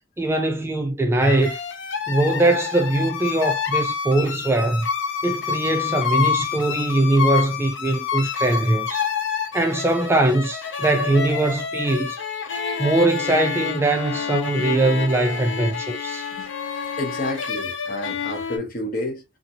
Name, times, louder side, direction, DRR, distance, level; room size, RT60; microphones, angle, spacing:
voice 1, 0.2-1.6 2.1-4.9 5.2-9.1 9.5-12.2 12.8-16.3, right 2 dB, 15° right, 0.3 m, -21 dB
sound 1, 1.2-18.6, left 7 dB, 75° left, 0.6 m, -28 dB
voice 2, 17.0-19.2, left 1 dB, 50° left, 0.8 m, -30 dB
2.7 x 2.4 x 2.7 m
head